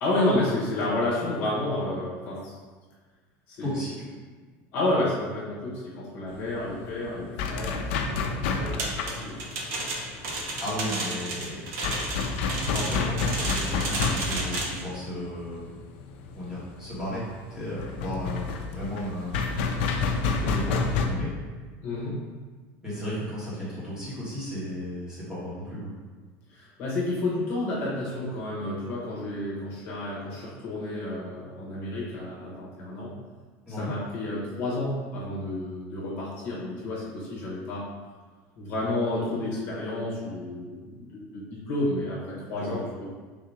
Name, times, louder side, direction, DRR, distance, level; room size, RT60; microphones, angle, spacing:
voice 1, 0.0-2.6 3.5-3.7 4.7-9.3 9.7-9.9 21.8-22.2 26.5-33.1 33.7-37.9 38.6-43.0, left 2 dB, 40° left, -5 dB, 1.1 m, -30 dB
voice 2, 3.6-4.1 10.6-11.7 12.7-15.8 16.4-19.4 20.4-21.3 22.8-25.9 33.7-33.9 42.5-42.8, equal, 10° right, -9 dB, 1.3 m, -34 dB
sound 1, 6.3-21.1, left 4 dB, 80° left, 0.5 m, -30 dB
sound 2, 8.8-14.9, right 2 dB, 45° right, 0.6 m, -32 dB
3.7 x 2.8 x 4.8 m, 1.4 s
cardioid pair, 175°, 6 cm